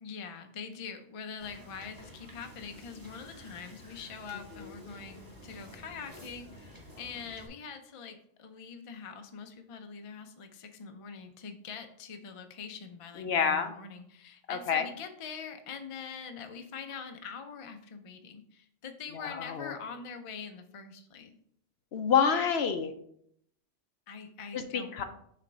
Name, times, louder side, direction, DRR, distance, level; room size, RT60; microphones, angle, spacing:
voice 1, 0.0-21.3 24.1-25.0, left 6 dB, 40° left, 6 dB, 0.5 m, -44 dB
Wind / Boat Water vehicle, 1.4-7.5, equal, 20° right, 1.2 m, -51 dB
voice 2, 13.2-13.7 14.5-14.9 19.1-19.7 21.9-22.9 24.5-25.0, left 7 dB, 65° left, 8 dB, 0.8 m, -28 dB
6.4 x 3.4 x 5.1 m, 0.68 s
omnidirectional pair, 1.3 m